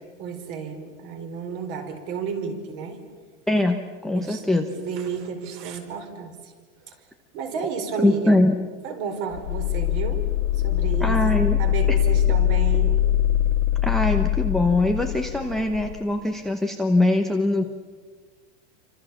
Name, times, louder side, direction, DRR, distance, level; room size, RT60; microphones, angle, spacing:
voice 1, 0.2-3.0 4.1-6.5 6.9-7.0 7.3-8.4 8.8-10.2 10.5-11.2 11.6-13.0, right 6 dB, 40° right, 6 dB, 4.7 m, -32 dB
voice 2, 3.5-4.7 8.0-8.6 11.0-11.6 13.8-17.6, left 1 dB, ahead, 5 dB, 0.9 m, -22 dB
sound 1, 9.3-16.0, left 11 dB, 80° left, 1.9 m, -22 dB
28.5 x 25.5 x 7.2 m, 1.5 s
supercardioid pair, 160°, 36 cm